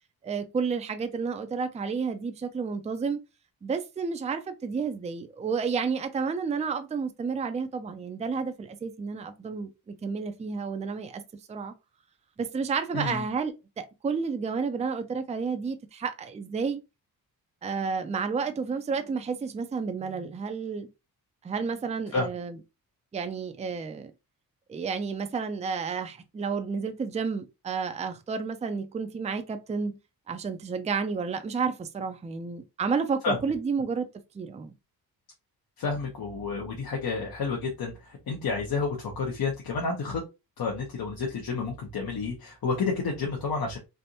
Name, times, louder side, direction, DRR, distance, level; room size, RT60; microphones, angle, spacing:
voice 1, 0.2-3.2 3.6-11.2 11.5-11.7 12.4-16.8 17.6-20.9 21.4-22.6 23.1-24.1 24.7-30.0 30.3-34.1 34.3-34.8, right 5 dB, 20° right, 0.4 m, -31 dB
voice 2, 12.9-13.2 22.1-22.3 33.2-33.4 35.8-40.2 40.6-43.8, left 4 dB, 70° left, 1.0 m, -30 dB
3.4 x 2.5 x 2.7 m
wide cardioid pair, 110°, 38 cm